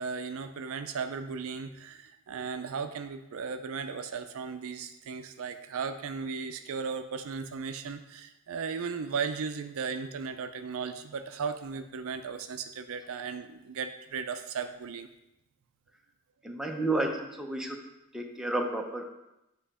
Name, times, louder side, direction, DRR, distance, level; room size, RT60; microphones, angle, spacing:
voice 1, 0.0-15.1, right 5 dB, 65° right, 8 dB, 0.4 m, -36 dB
voice 2, 16.4-17.8 18.1-19.0, right 2 dB, ahead, 1 dB, 0.6 m, -31 dB
7.8 x 3.0 x 4.8 m, 0.90 s
head